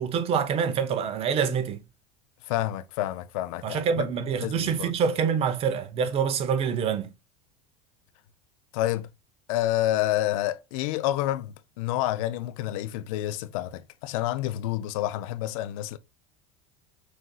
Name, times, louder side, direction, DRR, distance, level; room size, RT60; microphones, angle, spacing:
voice 1, 0.0-1.8 3.6-7.1, right 7 dB, 35° right, 0.6 m, -26 dB
voice 2, 2.5-4.1 4.4-4.9 8.7-9.1 9.5-16.0, left 14 dB, 75° left, 0.4 m, -29 dB
6.2 x 2.6 x 2.2 m
supercardioid pair, 145°, 18 cm